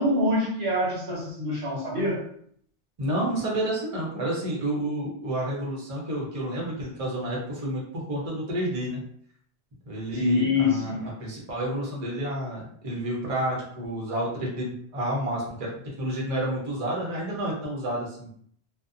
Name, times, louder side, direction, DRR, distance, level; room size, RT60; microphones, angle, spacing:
voice 1, 0.0-2.2 10.1-11.1, left 2 dB, 65° right, -3 dB, 0.9 m, -25 dB
voice 2, 3.0-9.0 9.8-15.7 16.0-18.3, right 1 dB, 35° right, -4 dB, 0.7 m, -30 dB
2.5 x 2.1 x 2.5 m, 0.63 s
omnidirectional pair, 1.2 m